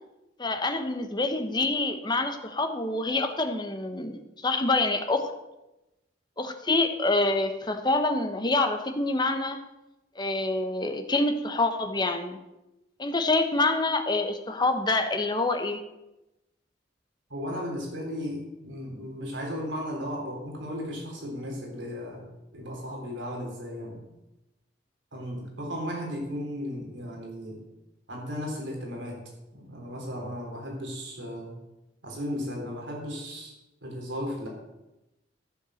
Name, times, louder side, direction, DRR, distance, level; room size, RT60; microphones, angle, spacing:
voice 1, 0.4-5.3 6.4-9.6 10.2-12.4 13.0-15.8, left 2 dB, 25° left, 6 dB, 1.1 m, -26 dB
voice 2, 17.3-22.3 22.5-24.1 25.1-27.6 28.1-31.5 32.0-33.5 33.8-34.5, equal, 80° right, 0 dB, 3.9 m, -35 dB
13.5 x 7.2 x 6.4 m, 0.96 s
head